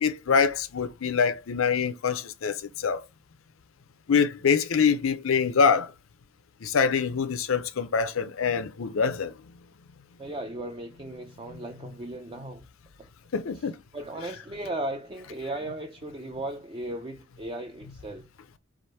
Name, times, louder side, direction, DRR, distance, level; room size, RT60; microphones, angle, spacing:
voice 1, 0.0-3.0 4.1-5.9 6.6-9.3 13.3-13.8, left 6 dB, 85° left, 0.5 m, -25 dB
voice 2, 10.2-12.7 13.0-13.1 13.5-18.3, right 1 dB, 25° right, 0.5 m, -36 dB
4.8 x 2.5 x 4.3 m
head